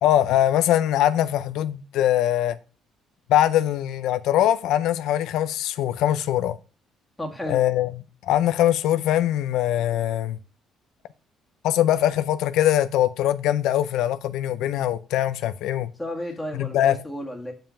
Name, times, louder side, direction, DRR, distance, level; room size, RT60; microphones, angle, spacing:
voice 1, 0.0-2.6 3.3-6.6 7.5-8.0 8.2-10.4 11.6-15.9 16.5-17.0, left 12 dB, 80° left, 0.5 m, -22 dB
voice 2, 7.2-7.6 16.0-17.5, left 1 dB, 5° left, 1.9 m, -32 dB
7.2 x 5.5 x 5.7 m
cardioid pair, 155°, 0 cm